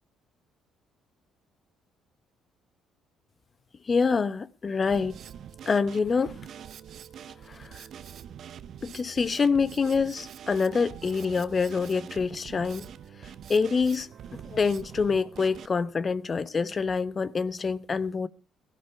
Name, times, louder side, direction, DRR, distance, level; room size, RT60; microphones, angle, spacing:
voice 1, 3.8-5.2 5.7-6.4 7.4-7.9 8.8-12.9 13.2-18.3, left 5 dB, 40° left, 1.0 m, -26 dB
Drum kit, 4.8-15.7, right 9 dB, 60° right, 0.9 m, -45 dB
17.0 x 12.0 x 4.7 m
supercardioid pair, 60°, 0 cm